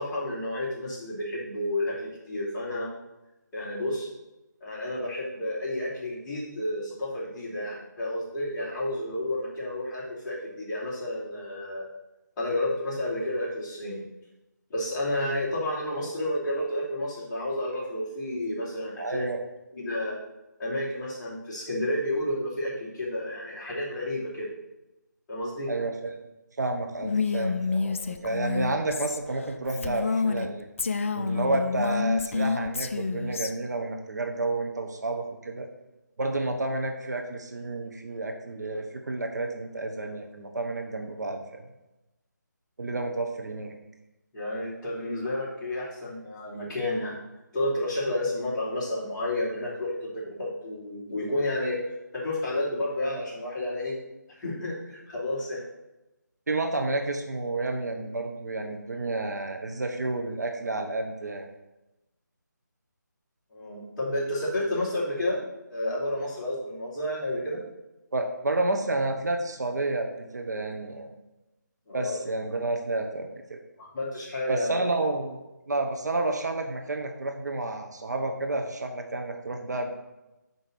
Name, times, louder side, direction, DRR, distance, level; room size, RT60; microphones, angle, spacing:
voice 1, 0.0-2.9 3.5-4.1 4.6-11.9 12.4-14.0 14.7-19.3 19.7-20.2 20.6-24.5 25.3-25.7 44.3-47.2 47.5-51.8 52.1-54.0 54.4-55.6 63.5-65.4 65.7-67.6 71.9-72.2 73.8-74.8, left 1 dB, 15° left, -10 dB, 2.7 m, -31 dB
voice 2, 19.0-19.4 25.7-26.1 26.6-30.7 31.1-35.7 36.2-41.4 42.8-43.7 56.5-61.5 68.1-71.1 71.9-73.6 74.5-75.4 75.7-79.9, right 2 dB, 60° right, 4 dB, 1.0 m, -30 dB
Female speech woman speaking, 27.0-30.5 30.8-33.5, left 4 dB, 40° left, 0.5 m, -28 dB
5.6 x 5.4 x 6.5 m, 1.0 s
figure-of-eight pair, 160°, 10 cm